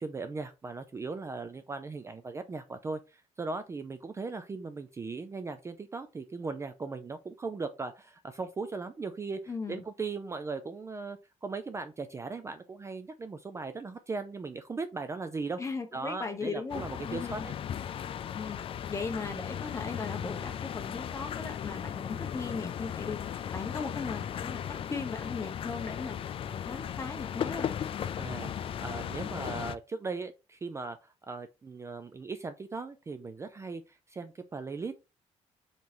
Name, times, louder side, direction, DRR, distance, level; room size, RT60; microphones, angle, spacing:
voice 1, 0.0-9.4 9.7-15.6 15.9-17.5 28.2-35.1, right 4 dB, 25° right, 0.4 m, -38 dB
voice 2, 9.5-9.8 15.6-17.5 18.3-18.6 18.9-26.2 26.5-27.7, left 4 dB, 25° left, 1.0 m, -38 dB
sound 1, 16.7-29.8, left 9 dB, 45° left, 0.3 m, -36 dB
3.9 x 3.7 x 2.9 m
cardioid pair, 125°, 12 cm